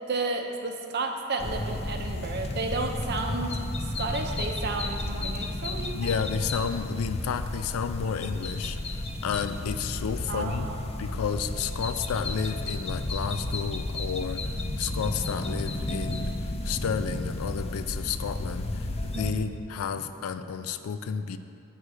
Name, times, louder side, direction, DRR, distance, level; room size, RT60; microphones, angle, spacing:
voice 1, 0.1-6.1 10.3-10.8 19.1-19.5, right 3 dB, 50° right, 3 dB, 0.6 m, -32 dB
sound 1, 1.4-19.3, left 1 dB, 30° left, 0.5 m, -32 dB
voice 2, 5.9-10.7 11.0-16.3 16.6-21.4, left 6 dB, 90° left, 10 dB, 0.4 m, -32 dB
7.9 x 3.7 x 6.3 m, 2.6 s
head